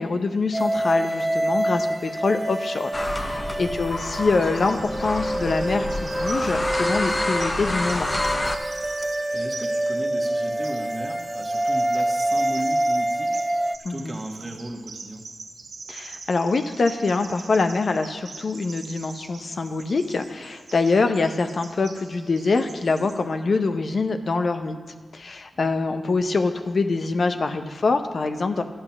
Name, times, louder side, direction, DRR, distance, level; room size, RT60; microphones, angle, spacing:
voice 1, 0.0-8.1 13.8-14.2 15.9-24.8 25.1-28.6, left 3 dB, 60° left, 7 dB, 0.7 m, -24 dB
sound 1, 0.5-13.8, right 1 dB, 15° right, 0.5 m, -26 dB
sound 2, 2.9-8.6, left 1 dB, 30° left, 0.8 m, -28 dB
voice 2, 3.2-3.6 9.3-13.5 13.9-15.2 25.5-25.7, right 1 dB, 30° right, 2 dB, 1.6 m, -36 dB
Bird vocalization bird call bird song, 4.4-23.2, right 4 dB, 75° right, 1.1 m, -43 dB
12.0 x 7.9 x 5.9 m, 1.5 s
cardioid pair, 70°, 0 cm